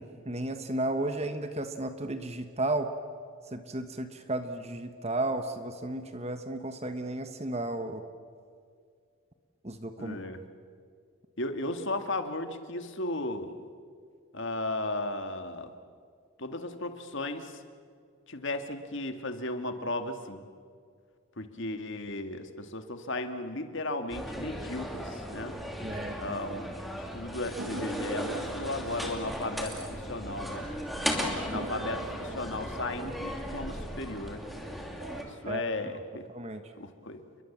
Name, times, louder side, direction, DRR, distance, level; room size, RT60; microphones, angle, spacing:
voice 1, 0.0-2.9 3.5-8.0 9.6-10.2 25.8-26.2 35.4-35.6 36.3-36.6, right 2 dB, 30° right, 8 dB, 1.3 m, -33 dB
voice 2, 10.0-10.4 11.4-13.6 14.3-15.7 16.4-17.6 18.3-20.4 21.4-25.5 26.2-26.7 26.9-30.6 31.1-34.4 35.2-36.3 36.8-37.2, left 2 dB, 55° left, 7 dB, 2.0 m, -35 dB
sound 1, 24.1-35.2, equal, ahead, 2.8 m, -36 dB
sound 2, 27.6-30.6 30.9-31.0 31.5-34.5 34.9-35.5, right 2 dB, 75° right, 1.2 m, -45 dB
30.0 x 22.5 x 7.4 m, 2.2 s
head